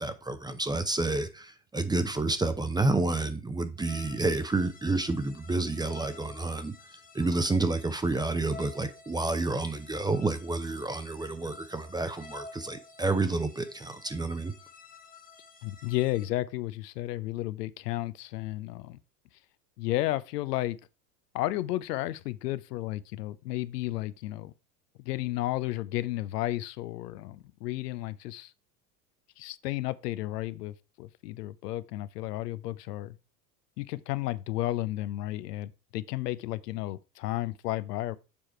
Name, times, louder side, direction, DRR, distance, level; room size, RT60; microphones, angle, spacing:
voice 1, 0.0-6.7 7.1-14.5, right 2 dB, 10° right, 0.6 m, -29 dB
sound 1, 3.8-16.3, left 3 dB, 15° left, 1.2 m, -51 dB
voice 2, 15.6-19.0 19.8-20.8 21.3-24.5 25.0-28.5 29.4-33.2 33.8-38.2, left 16 dB, 70° left, 0.7 m, -33 dB
7.2 x 4.7 x 4.4 m
hypercardioid pair, 85°, 50 cm